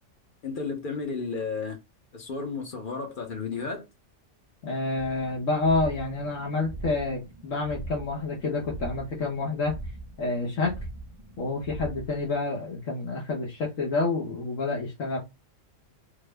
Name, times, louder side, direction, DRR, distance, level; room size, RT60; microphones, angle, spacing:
voice 1, 0.4-1.8 2.1-3.8, left 4 dB, 50° left, 0.8 m, -33 dB
voice 2, 4.6-9.8 10.2-10.8 11.4-15.2, left 3 dB, 90° left, 1.4 m, -28 dB
sound 1, 5.0-12.3, right 2 dB, 40° right, 0.4 m, -41 dB
3.4 x 2.0 x 3.3 m
omnidirectional pair, 1.3 m